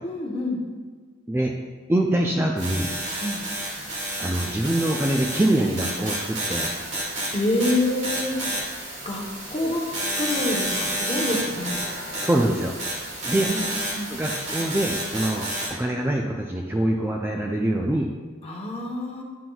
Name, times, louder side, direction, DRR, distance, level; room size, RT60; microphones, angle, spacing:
voice 1, 0.0-0.6 3.2-3.4 7.3-8.4 9.0-9.2 9.5-9.9 10.2-11.8 13.4-13.6 14.0-14.1 18.4-19.2, left 1 dB, 30° left, -1 dB, 0.9 m, -26 dB
voice 2, 1.9-2.9 4.2-6.7 9.6-9.8 12.2-13.5 14.1-18.1, right 1 dB, 10° right, 0 dB, 0.3 m, -24 dB
sound 1, 2.6-15.7, right 1 dB, 55° right, 2.0 m, -30 dB
9.2 x 5.9 x 2.3 m, 1.5 s
head